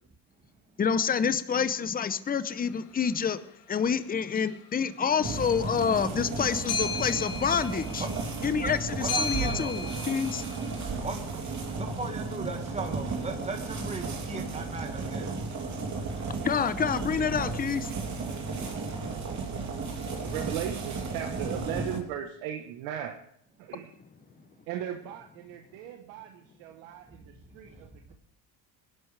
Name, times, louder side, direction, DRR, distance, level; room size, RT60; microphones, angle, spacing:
voice 1, 0.8-3.4 3.7-8.0 8.4-10.4 16.4-17.9, left 6 dB, 20° left, 13 dB, 0.7 m, -28 dB
sound 1, 3.1-3.3 4.3-4.8 5.0-10.8, left 4 dB, 60° left, 2.3 m, -37 dB
sound 2, 5.2-22.0, right 3 dB, 40° right, 3.1 m, -34 dB
voice 2, 9.0-9.7 11.0-11.2 11.8-15.3, right 3 dB, 15° right, 4 dB, 1.8 m, -37 dB
voice 3, 20.2-23.2 23.6-23.9 24.7-28.1, right 10 dB, 85° right, 4 dB, 1.3 m, -37 dB
20.5 x 11.5 x 3.4 m, 0.68 s
supercardioid pair, 105°, 46 cm